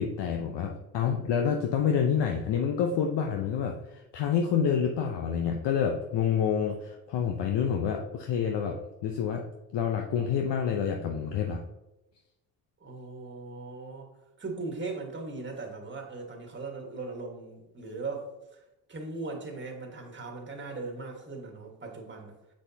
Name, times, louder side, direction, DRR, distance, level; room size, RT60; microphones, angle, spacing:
voice 1, 0.0-9.4 9.7-11.6, left 7 dB, 60° left, 3 dB, 0.8 m, -28 dB
voice 2, 12.8-14.1 14.4-18.6 18.9-22.4, right 3 dB, 25° right, 2 dB, 1.6 m, -39 dB
6.2 x 6.0 x 2.8 m, 0.95 s
supercardioid pair, 60°, 47 cm